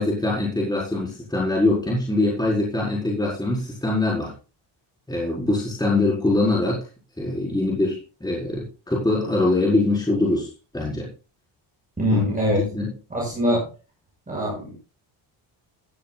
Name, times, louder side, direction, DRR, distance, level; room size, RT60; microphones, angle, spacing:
voice 1, 0.0-4.3 5.1-6.8 7.2-10.5 10.7-11.1 12.1-12.3 12.6-12.9, left 2 dB, 10° left, -5 dB, 4.9 m, -23 dB
voice 2, 12.0-12.7 13.1-13.7 14.3-14.8, equal, 15° right, -3 dB, 6.9 m, -23 dB
15.0 x 13.5 x 2.4 m, 0.34 s
cardioid pair, 145°, 48 cm